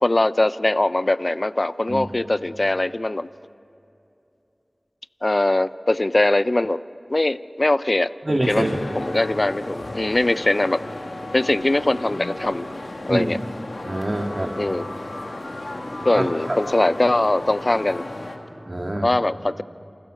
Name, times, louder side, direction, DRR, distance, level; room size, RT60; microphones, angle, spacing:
voice 1, 0.0-3.3 5.2-6.8 7.1-8.6 9.0-10.8 11.3-12.7 13.1-13.4 14.6-14.8 16.0-18.0 19.0-19.6, left 2 dB, 50° left, 15 dB, 0.5 m, -21 dB
voice 2, 8.2-8.8 13.1-13.4 13.8-14.5 16.1-16.2 18.7-19.1, right 1 dB, 45° right, 1 dB, 2.0 m, -24 dB
sound 1, 8.4-18.4, left 1 dB, 85° left, 2.5 m, -34 dB
28.5 x 27.0 x 6.4 m, 2.8 s
wide cardioid pair, 50°, 0 cm